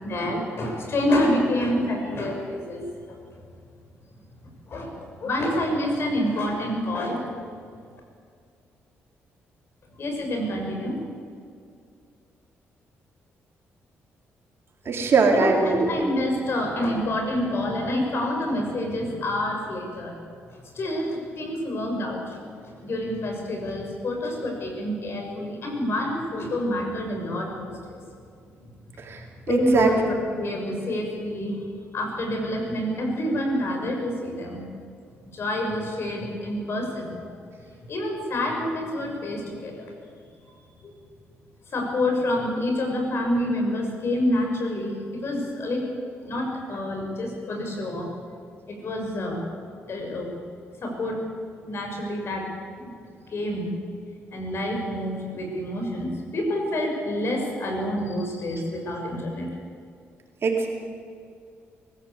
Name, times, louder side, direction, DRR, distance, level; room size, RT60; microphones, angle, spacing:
voice 1, 0.0-3.1 4.7-7.2 10.0-11.0 15.0-20.2 20.7-22.4 22.8-28.0 29.5-31.6 31.9-34.6 35.3-37.1 37.9-39.9 40.8-40.9 41.7-45.8 46.2-48.1 48.7-49.5 49.9-50.3 50.8-51.2 51.6-52.5 52.8-52.9 53.3-53.7 54.3-59.5, left 1 dB, 55° left, 2 dB, 6.4 m, -27 dB
voice 2, 14.9-15.9 29.0-29.2 29.5-29.9 60.4-60.7, right 4 dB, 55° right, 1 dB, 4.2 m, -21 dB
23.0 x 15.0 x 8.4 m, 2.3 s
cardioid pair, 80°, 5 cm